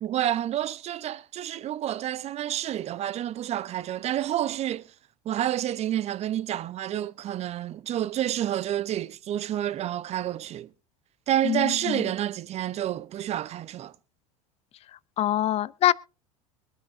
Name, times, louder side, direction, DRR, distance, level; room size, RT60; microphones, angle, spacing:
voice 1, 0.0-4.9 5.2-10.7 11.3-13.9, right 12 dB, 35° right, 0.8 m, -29 dB
voice 2, 11.4-12.0 15.2-15.9, left 13 dB, 35° left, 0.5 m, -24 dB
23.5 x 9.1 x 2.7 m
figure-of-eight pair, 75°, 19 cm